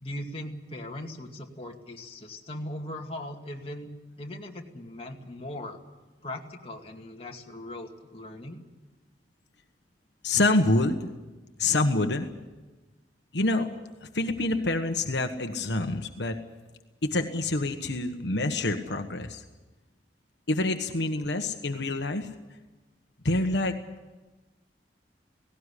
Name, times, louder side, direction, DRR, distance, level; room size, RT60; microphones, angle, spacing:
voice 1, 0.0-3.9 4.2-5.8 6.2-8.6, left 1 dB, 35° left, 1 dB, 2.2 m, -39 dB
voice 2, 10.2-11.1 11.6-12.3 13.3-13.7 14.0-16.4 17.0-19.4 20.5-22.3 23.2-23.8, left 2 dB, 75° left, 6 dB, 1.3 m, -26 dB
18.0 x 17.5 x 10.0 m, 1.2 s
head